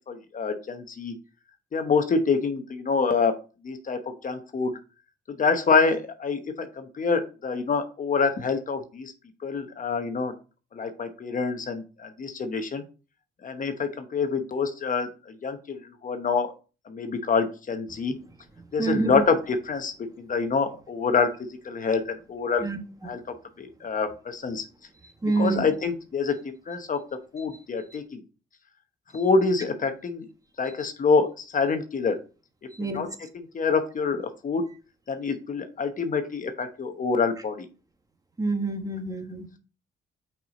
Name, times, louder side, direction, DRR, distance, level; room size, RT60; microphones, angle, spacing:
voice 1, 0.1-1.1 1.7-3.3 3.6-4.8 5.3-9.1 9.4-10.3 10.7-12.8 13.4-15.1 15.4-16.5 16.9-18.1 18.7-21.3 21.6-22.7 23.0-23.2 23.6-24.6 25.4-26.4 26.7-27.0 27.3-28.2 29.1-30.2 30.6-32.2 32.8-34.7 35.1-37.7, left 4 dB, 40° left, 7 dB, 1.0 m, -26 dB
voice 2, 18.8-19.1 22.6-23.1 25.2-25.6 32.7-33.0 38.4-39.5, right 3 dB, 20° right, 5 dB, 1.3 m, -27 dB
5.9 x 4.8 x 3.9 m, 0.34 s
cardioid pair, 90°, 20 cm